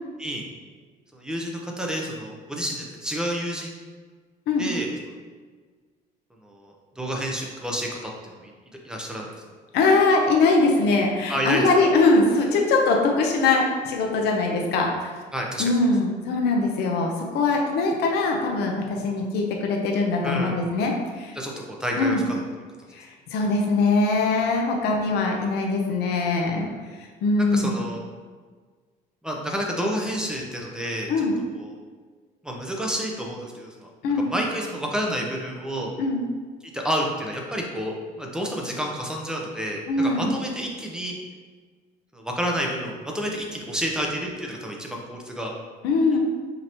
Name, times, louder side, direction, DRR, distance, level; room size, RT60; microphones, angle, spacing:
voice 1, 1.1-3.8 4.6-4.9 6.4-8.1 8.4-8.5 8.8-9.3 11.3-11.7 15.3-15.7 20.2-20.6 21.4-22.5 24.3-24.4 27.4-28.0 29.2-31.2 31.5-31.8 32.4-33.9 34.2-35.9 36.6-41.1 42.1-45.5, equal, 5° right, -1 dB, 0.7 m, -29 dB
voice 2, 9.7-15.2 15.6-21.4 22.0-22.2 22.9-26.7 27.0-27.7 31.1-31.3 34.0-34.3 36.0-36.2 39.9-40.4 45.8-46.2, left 3 dB, 80° left, 1 dB, 0.7 m, -22 dB
5.1 x 2.8 x 2.9 m, 1.5 s
cardioid pair, 110°, 17 cm